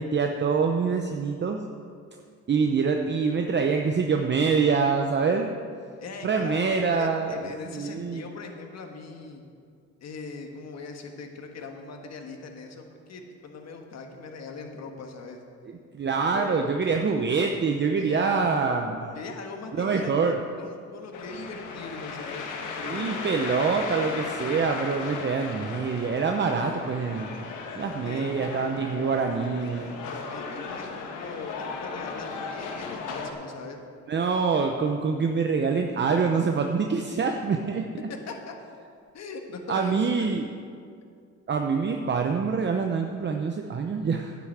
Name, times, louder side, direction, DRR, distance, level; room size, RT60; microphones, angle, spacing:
voice 1, 0.0-1.6 2.5-5.5 6.2-8.2 15.6-19.2 19.8-20.4 22.8-27.5 27.7-30.0 34.1-38.1 39.7-40.5 41.5-44.4, right 5 dB, 35° right, 4 dB, 0.7 m, -25 dB
voice 2, 6.0-9.4 10.0-15.4 16.2-16.7 18.0-18.4 19.1-23.2 28.0-28.3 30.0-33.8 38.3-38.5 39.1-40.3, left 4 dB, 60° left, 3 dB, 1.6 m, -40 dB
sound 1, 21.1-33.3, left 4 dB, 90° left, 1.4 m, -36 dB
10.0 x 7.0 x 7.9 m, 2.2 s
cardioid pair, 90°, 30 cm